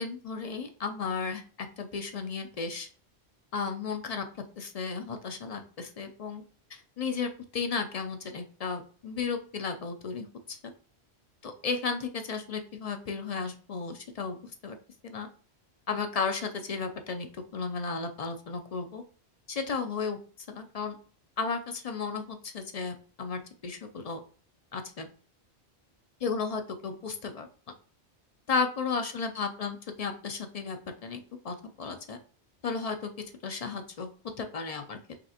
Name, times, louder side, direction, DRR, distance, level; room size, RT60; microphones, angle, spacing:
voice 1, 0.0-2.9 3.5-4.3 4.6-6.4 6.7-10.7 11.4-14.4 14.6-14.8 15.0-15.3 15.9-19.0 19.5-20.2 20.5-21.0 21.4-24.2 24.7-25.1 26.2-27.5 28.5-32.2 32.6-33.1 33.4-34.1 34.4-35.0, left 5 dB, 55° left, 6 dB, 0.4 m, -34 dB
5.1 x 3.2 x 2.8 m, 0.42 s
omnidirectional pair, 1.1 m